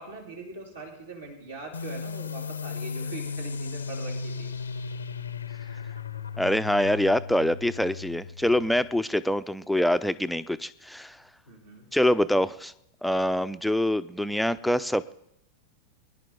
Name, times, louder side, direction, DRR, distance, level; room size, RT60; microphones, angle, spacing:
voice 1, 0.0-4.5 11.5-11.9, right 3 dB, 80° right, -3 dB, 2.8 m, -42 dB
sound 1, 1.7-9.0, left 5 dB, 75° left, 0.7 m, -36 dB
voice 2, 6.4-11.2 11.9-12.7 13.0-15.1, left 1 dB, ahead, 13 dB, 0.5 m, -25 dB
23.0 x 10.5 x 3.7 m, 0.76 s
figure-of-eight pair, 90°, 0 cm